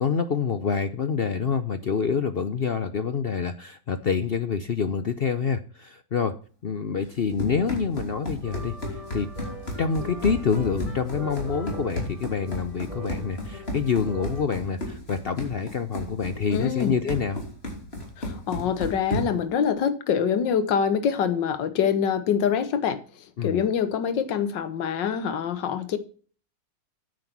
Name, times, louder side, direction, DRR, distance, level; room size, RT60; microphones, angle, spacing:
voice 1, 0.0-6.4 6.6-9.3 9.8-17.4 23.4-23.6, left 6 dB, 60° left, 0.6 m, -27 dB
Run, 7.0-19.5, left 1 dB, 35° left, 3.3 m, -34 dB
sound 1, 8.4-14.4, equal, 20° left, 2.2 m, -39 dB
voice 2, 16.5-16.9 18.2-23.0 23.4-26.0, left 7 dB, 80° left, 1.8 m, -25 dB
9.4 x 7.7 x 6.0 m
omnidirectional pair, 1.9 m